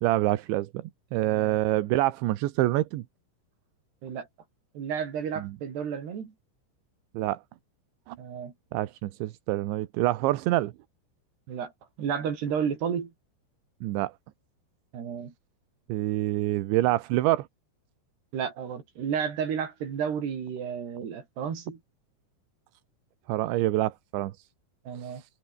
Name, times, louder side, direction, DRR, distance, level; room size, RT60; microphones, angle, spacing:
voice 1, 0.0-3.0 5.4-5.5 7.2-7.4 8.1-8.2 8.7-10.7 13.8-14.1 15.9-17.5 23.3-24.3 25.0-25.1, right 16 dB, 75° right, 3.3 m, -26 dB
voice 2, 1.2-1.6 4.0-4.3 4.8-6.3 8.2-8.5 11.5-11.7 12.0-13.1 14.9-15.3 18.3-21.8 24.9-25.2, right 7 dB, 60° right, 5.9 m, -32 dB
omnidirectional pair, 5.6 m